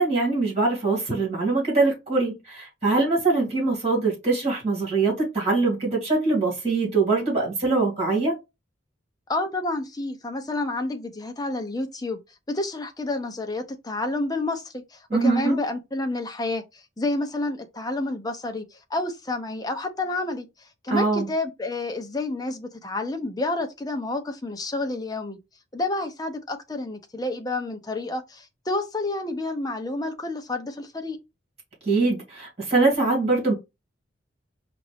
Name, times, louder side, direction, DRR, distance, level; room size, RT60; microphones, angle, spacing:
voice 1, 0.0-8.3 15.1-15.5 20.9-21.3 31.9-33.5, right 3 dB, 30° right, 2.3 m, -23 dB
voice 2, 9.3-12.2 12.5-18.7 18.9-20.5 20.8-25.4 25.7-31.2, left 2 dB, 20° left, 0.6 m, -29 dB
4.9 x 2.5 x 3.3 m
head